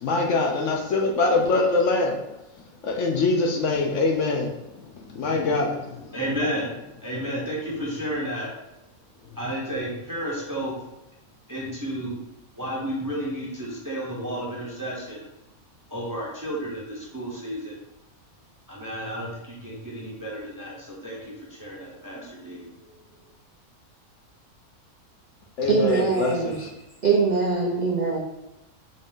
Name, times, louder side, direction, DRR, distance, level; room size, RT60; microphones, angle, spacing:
voice 1, 0.0-2.2 2.8-4.5 5.1-6.1 25.6-26.7, left 3 dB, 65° left, 1 dB, 0.8 m, -23 dB
voice 2, 6.1-6.7 7.0-8.5 9.4-10.7 11.5-12.2 12.6-15.2 15.9-17.8 18.7-21.2 21.5-22.6, equal, 20° right, -5 dB, 0.5 m, -32 dB
voice 3, 25.7-26.6 27.0-28.2, right 4 dB, 70° right, -3 dB, 0.4 m, -22 dB
3.9 x 2.5 x 3.6 m, 0.93 s
omnidirectional pair, 1.5 m